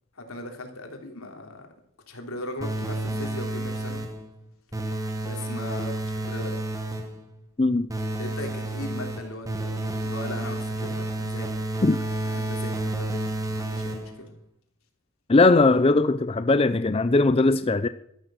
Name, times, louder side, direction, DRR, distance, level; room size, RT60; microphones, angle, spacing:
voice 1, 0.1-1.7 2.1-4.0 5.2-6.6 8.2-11.5 11.9-13.3 13.6-14.3, left 1 dB, 85° left, 3.2 m, -38 dB
sound 1, 2.6-4.3 4.7-7.2 7.9-14.3, right 2 dB, 15° right, 1.4 m, -30 dB
voice 2, 15.3-17.9, left 3 dB, 25° left, 0.5 m, -19 dB
13.0 x 11.5 x 6.2 m
head